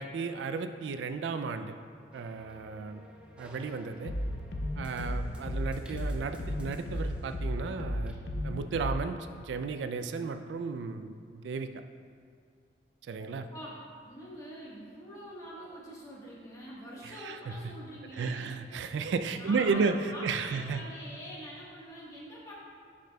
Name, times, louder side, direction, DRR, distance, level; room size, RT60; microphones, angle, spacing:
voice 1, 0.0-1.7 2.1-3.0 3.4-4.1 4.8-8.1 8.4-11.7 13.1-13.5 17.0-17.6 18.1-20.0 20.2-20.8, right 5 dB, 90° right, 9 dB, 0.3 m, -33 dB
sound 1, 2.1-8.7, equal, 5° right, 0.5 m, -53 dB
sound 2, 4.0-9.0, left 1 dB, 75° left, 0.5 m, -34 dB
voice 2, 13.5-18.5 19.4-22.6, equal, 20° left, -6 dB, 1.3 m, -45 dB
10.0 x 5.0 x 2.2 m, 2.2 s
head